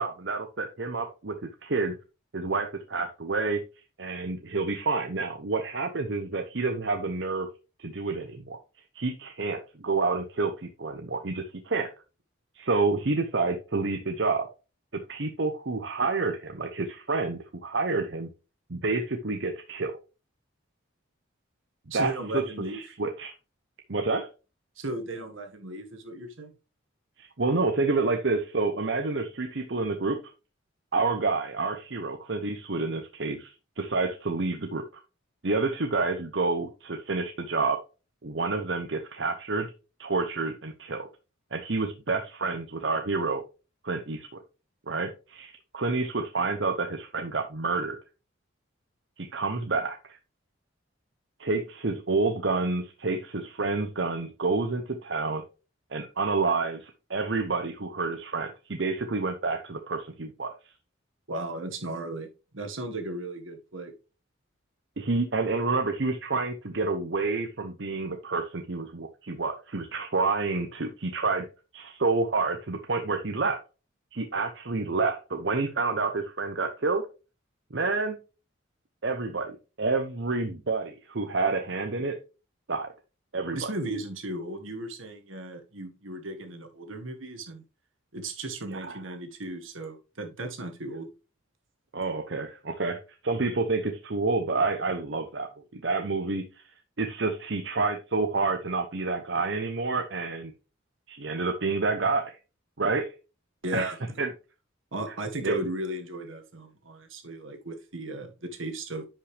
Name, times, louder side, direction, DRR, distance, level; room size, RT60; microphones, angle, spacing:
voice 1, 0.0-1.3 1.6-1.9 2.3-3.6 4.0-7.5 7.8-8.6 8.9-11.9 12.6-14.5 15.1-18.3 18.7-19.9 21.9-23.3 23.9-24.3 27.2-30.2 30.9-35.0 35.4-37.8 38.2-39.7 40.0-41.1 41.5-43.4 43.8-44.3 44.9-48.0 49.2-50.2 51.4-55.4 55.9-60.5 65.0-71.5 71.7-73.6 74.1-77.0 77.7-78.2 79.0-82.2 82.7-82.9 83.3-83.7 88.7-89.0 91.9-95.5 95.7-96.6 97.0-100.5 101.1-102.4 102.8-103.1 103.7-104.3 105.4-105.6, right 3 dB, 60° right, 0.9 m, -29 dB
voice 2, 21.9-22.8 24.8-26.5 61.3-62.3 62.5-63.9 83.5-87.6 88.1-91.1 103.6-104.2 104.9-109.0, right 1 dB, 75° right, 1.8 m, -36 dB
10.0 x 5.6 x 3.4 m
head